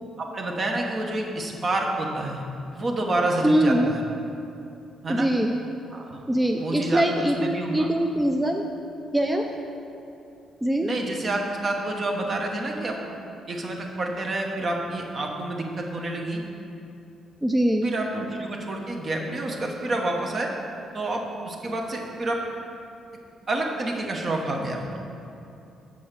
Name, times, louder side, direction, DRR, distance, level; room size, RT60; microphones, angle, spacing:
voice 1, 0.2-2.4 2.7-4.0 5.0-5.3 5.9-6.2 6.5-7.9 10.8-13.0 13.5-16.4 17.8-20.5 20.9-22.4 23.5-24.8, right 2 dB, 45° right, 1 dB, 1.2 m, -28 dB
voice 2, 3.4-3.9 5.1-5.6 6.3-8.7 9.1-9.5 10.6-10.9 17.4-17.9, right 1 dB, 10° right, 2 dB, 0.5 m, -22 dB
6.6 x 5.5 x 6.7 m, 2.7 s
cardioid pair, 90°, 0 cm